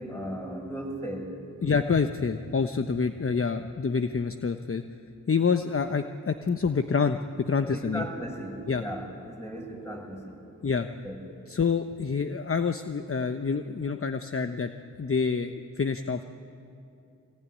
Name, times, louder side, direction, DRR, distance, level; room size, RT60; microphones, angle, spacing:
voice 1, 0.0-1.4 7.6-10.4 11.0-11.2, equal, 5° left, 1 dB, 7.2 m, -36 dB
voice 2, 1.6-4.8 5.3-7.2 7.5-8.1 8.7-8.8 10.6-10.9 11.5-14.7 15.0-16.2, left 5 dB, 40° left, 8 dB, 1.0 m, -27 dB
24.0 x 19.5 x 10.0 m, 2.7 s
cardioid pair, 45°, 36 cm